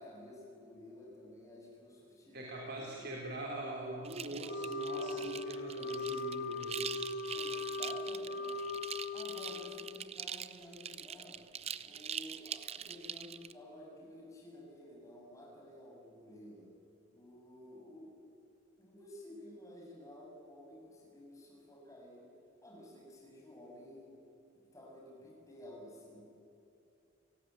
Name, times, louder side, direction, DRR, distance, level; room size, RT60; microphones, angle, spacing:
voice 1, 0.0-3.2 7.3-8.8 9.1-11.4 11.8-16.7 17.1-18.2 18.8-22.3 22.6-24.2 24.6-26.2, left 1 dB, 15° left, -1 dB, 6.9 m, -52 dB
voice 2, 2.3-7.0, right 1 dB, 55° right, -2 dB, 3.7 m, -42 dB
sound 1, 4.0-13.5, right 8 dB, 30° right, 0.7 m, -43 dB
Wind instrument woodwind instrument, 4.5-10.1, left 3 dB, 70° left, 1.3 m, -39 dB
30.0 x 17.5 x 9.5 m, 2.7 s
head